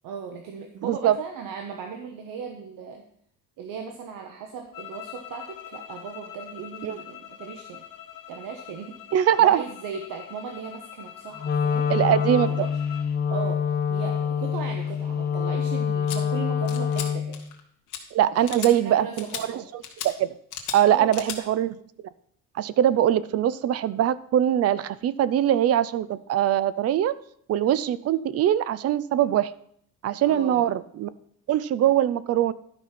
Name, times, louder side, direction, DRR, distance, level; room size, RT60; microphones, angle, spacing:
voice 1, 0.0-3.0 3.6-7.8 8.3-9.0 9.4-12.2 12.5-12.7 13.3-13.6 13.9-17.4 18.3-19.7 20.8-21.3 30.3-30.7, right 6 dB, 80° right, 4 dB, 1.2 m, -37 dB
voice 2, 0.8-1.1 6.8-7.0 9.1-9.6 11.9-12.5 18.1-20.3 20.7-21.8 22.6-27.1 27.5-29.5 30.0-31.1 31.5-32.5, right 11 dB, 50° right, 17 dB, 0.5 m, -22 dB
sound 1, 4.7-13.1, left 12 dB, 85° left, 2.2 m, -44 dB
Wind instrument woodwind instrument, 11.4-17.4, left 7 dB, 30° left, 0.6 m, -26 dB
sound 2, 16.1-16.2 16.7-17.1 17.3-17.6 17.9-18.0 18.5-18.7 19.2-19.4 19.8-20.1 20.5-20.8 21.1-21.4, left 9 dB, 65° left, 1.6 m, -34 dB
12.0 x 5.5 x 5.9 m, 0.66 s
cardioid pair, 155°, 33 cm